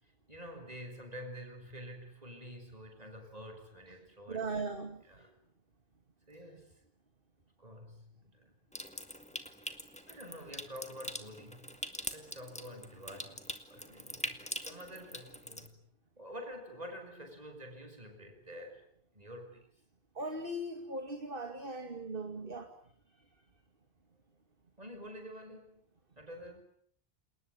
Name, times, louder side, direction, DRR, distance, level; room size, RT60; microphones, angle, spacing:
voice 1, 0.0-4.5 5.0-5.3 6.3-6.8 7.6-8.5 10.0-11.7 12.1-14.4 14.7-15.8 16.2-19.7 24.8-25.8 26.2-26.6, equal, 40° right, 5 dB, 7.0 m, -48 dB
voice 2, 4.3-5.0 20.2-22.7, right 2 dB, 60° right, 6 dB, 2.6 m, -38 dB
Water tap faucet / Sink (filling or washing) / Trickle dribble, 8.7-15.7, equal, 5° left, 2.3 m, -43 dB
29.0 x 19.5 x 10.0 m, 0.63 s
omnidirectional pair, 1.0 m